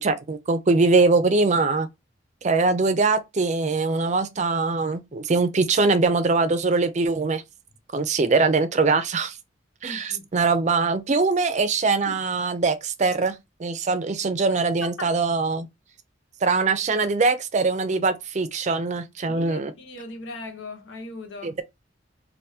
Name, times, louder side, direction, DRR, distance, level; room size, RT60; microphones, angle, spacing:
voice 1, 0.0-1.9 2.4-7.4 7.9-9.4 9.8-13.3 13.6-15.7 16.4-19.7 21.4-21.6, right 3 dB, 40° right, 0.5 m, -22 dB
voice 2, 9.9-10.3 12.1-12.2 14.8-15.1 19.3-21.6, left 2 dB, 85° left, 1.0 m, -38 dB
3.4 x 2.6 x 2.7 m
head